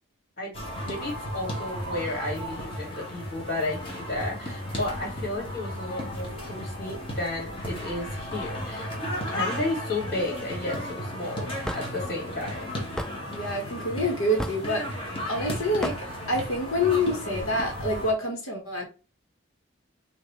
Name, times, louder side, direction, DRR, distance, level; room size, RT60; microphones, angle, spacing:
voice 1, 0.4-8.9 9.3-11.5 11.7-12.7, left 2 dB, 45° left, 2.4 m, -33 dB
sound 1, 0.5-18.1, equal, 25° left, 1.5 m, -34 dB
Hammer / Wood, 11.6-11.8 13.0-13.1 14.4-14.7 15.8-16.0, equal, 5° left, 0.3 m, -31 dB
voice 2, 13.3-15.0 15.3-18.8, left 1 dB, 90° left, 1.6 m, -27 dB
5.9 x 2.8 x 3.2 m
head